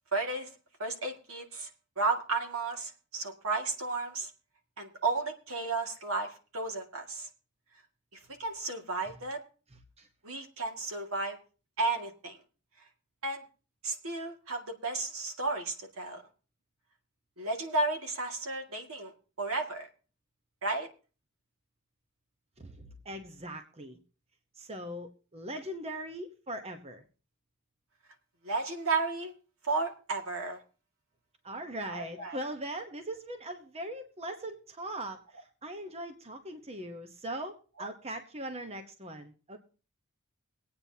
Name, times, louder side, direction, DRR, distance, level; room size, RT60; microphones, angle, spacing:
voice 1, 0.1-0.5 0.8-1.7 2.0-4.3 4.8-7.3 8.4-9.4 10.2-11.4 11.8-12.4 13.2-13.4 13.8-16.2 17.4-19.1 19.4-19.9 20.6-20.9 28.4-29.3 29.6-30.6 31.9-32.4, right 3 dB, 70° right, 3 dB, 2.1 m, -33 dB
voice 2, 9.7-10.1 22.6-24.0 24.5-27.0 31.4-39.6, right 1 dB, 30° right, 6 dB, 1.0 m, -40 dB
24.0 x 8.8 x 2.8 m, 0.36 s
head